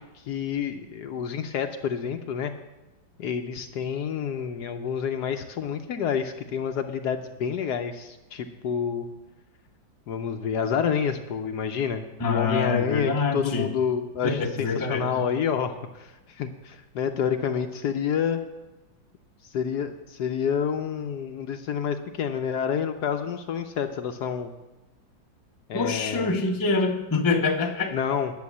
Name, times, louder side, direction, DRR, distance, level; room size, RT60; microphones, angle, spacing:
voice 1, 0.0-2.5 3.2-9.1 10.1-18.4 19.4-24.5 25.7-26.3 27.9-28.3, left 7 dB, 70° left, 7 dB, 1.1 m, -28 dB
voice 2, 12.2-13.7 14.2-15.2 25.7-27.9, left 3 dB, 20° left, 2 dB, 0.6 m, -25 dB
10.5 x 6.8 x 8.3 m, 1.1 s
omnidirectional pair, 2.1 m